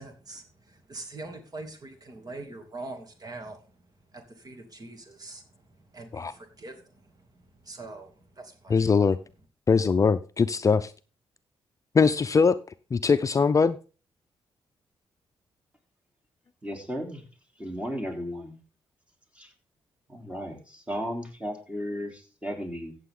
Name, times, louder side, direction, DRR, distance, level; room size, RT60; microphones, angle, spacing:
voice 1, 0.0-3.7 4.1-8.9, right 2 dB, 40° right, 2.7 m, -43 dB
voice 2, 8.7-9.2 9.7-10.9 11.9-12.6 12.9-13.8, left 5 dB, 35° left, 0.5 m, -21 dB
voice 3, 16.6-17.2 17.6-18.6 19.4-19.5 20.1-23.0, equal, 10° right, 3.4 m, -35 dB
14.5 x 7.8 x 3.8 m
cardioid pair, 85°, 10 cm